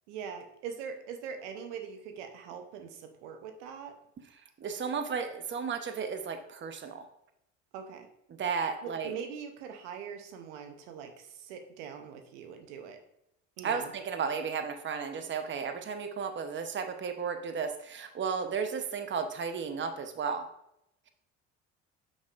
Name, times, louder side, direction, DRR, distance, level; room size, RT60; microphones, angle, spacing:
voice 1, 0.1-3.9 7.7-8.1 8.8-13.0 13.6-13.9, right 7 dB, 80° right, 6 dB, 0.8 m, -42 dB
voice 2, 4.6-7.0 8.4-9.1 13.6-20.4, right 6 dB, 35° right, 7 dB, 0.9 m, -34 dB
6.4 x 6.0 x 2.5 m, 0.80 s
hypercardioid pair, 70°, 35 cm